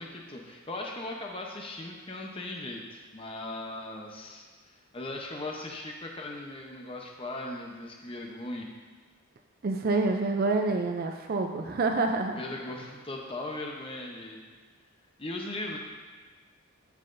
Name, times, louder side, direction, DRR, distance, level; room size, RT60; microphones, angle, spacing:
voice 1, 0.0-4.5 4.9-8.7 11.6-11.7 12.3-14.4 15.2-15.8, left 2 dB, 25° left, 0 dB, 0.7 m, -38 dB
voice 2, 9.6-12.4, right 3 dB, 40° right, 4 dB, 0.4 m, -27 dB
14.0 x 5.7 x 2.6 m, 1.5 s
head